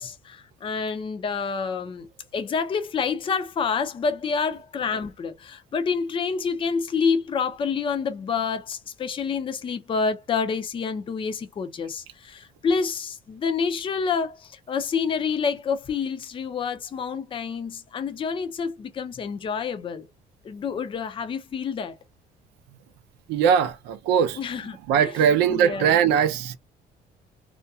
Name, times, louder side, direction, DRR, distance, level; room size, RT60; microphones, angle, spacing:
voice 1, 0.0-20.1 20.4-22.0 24.4-24.7 25.5-25.9, left 5 dB, 30° left, 0.5 m, -28 dB
voice 2, 23.3-26.6, right 8 dB, 90° right, 0.5 m, -21 dB
2.4 x 2.2 x 2.6 m
cardioid pair, 110°, 17 cm